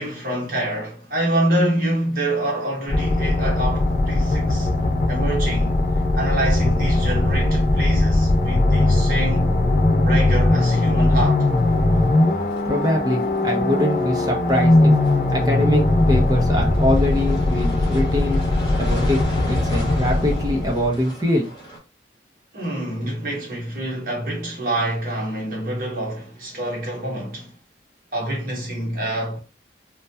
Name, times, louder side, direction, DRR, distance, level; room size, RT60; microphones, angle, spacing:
voice 1, 0.0-4.7 5.1-5.7 6.1-9.5 10.0-11.5 22.5-27.5 28.1-29.4, right 1 dB, 50° right, 1.0 m, -26 dB
sound 1, 2.9-20.9, left 2 dB, 45° left, 0.4 m, -19 dB
sound 2, 11.4-21.8, right 1 dB, 25° left, 1.0 m, -39 dB
voice 2, 12.6-14.9 15.3-18.4 18.8-21.5, left 1 dB, 20° right, 0.6 m, -23 dB
2.2 x 2.1 x 2.7 m
head